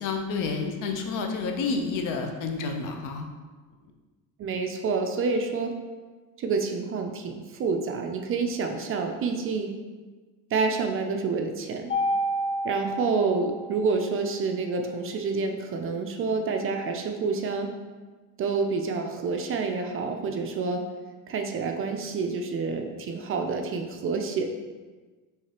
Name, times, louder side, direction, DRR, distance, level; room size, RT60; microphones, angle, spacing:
voice 1, 0.0-3.3, left 4 dB, 60° left, 4 dB, 0.6 m, -29 dB
voice 2, 4.4-5.7 6.4-9.7 10.5-11.9 12.6-17.7 18.4-20.8 21.3-24.5, right 4 dB, 40° right, 4 dB, 0.4 m, -28 dB
Mallet percussion, 11.9-14.1, equal, 35° left, 1.0 m, -29 dB
4.7 x 3.2 x 2.9 m, 1.3 s
cardioid pair, 130°, 34 cm